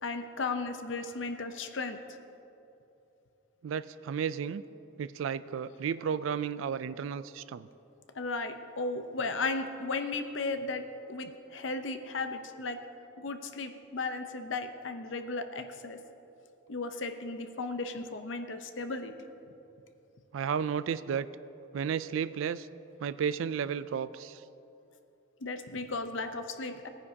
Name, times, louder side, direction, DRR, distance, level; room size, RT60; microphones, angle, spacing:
voice 1, 0.0-2.2 8.1-12.8 13.2-16.0 16.7-19.1 25.4-26.9, left 3 dB, 75° left, 8 dB, 0.7 m, -35 dB
voice 2, 3.6-4.6 5.0-7.7 20.3-21.3 21.7-22.7 23.0-24.3, right 7 dB, 85° right, 16 dB, 0.3 m, -33 dB
18.0 x 9.7 x 2.8 m, 2.8 s
head